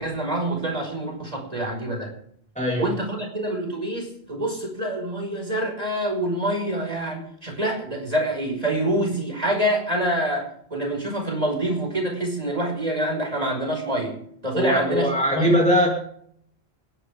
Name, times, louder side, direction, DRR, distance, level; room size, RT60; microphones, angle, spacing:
voice 1, 0.0-2.1 2.8-14.1 14.4-15.6, right 1 dB, 35° right, 1 dB, 5.7 m, -26 dB
voice 2, 2.6-2.9 14.5-15.9, equal, 5° left, -1 dB, 2.7 m, -20 dB
28.5 x 11.5 x 3.7 m, 0.66 s
omnidirectional pair, 1.1 m